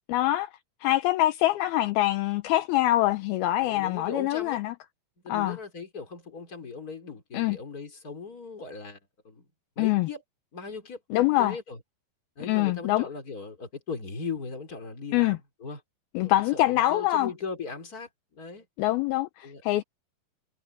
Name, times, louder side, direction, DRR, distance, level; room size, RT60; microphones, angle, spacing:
voice 1, 0.1-0.5 0.8-4.8 5.3-5.6 7.3-7.6 9.8-10.1 11.1-11.6 12.5-13.1 15.1-15.4 16.1-17.3 18.8-19.8, left 15 dB, 80° left, 2.4 m, -24 dB
voice 2, 3.6-4.6 5.2-9.0 9.2-9.4 9.8-10.2 10.5-11.8 12.4-15.8 16.2-18.7 19.4-19.6, left 5 dB, 20° left, 3.9 m, -38 dB
omnidirectional pair, 4.9 m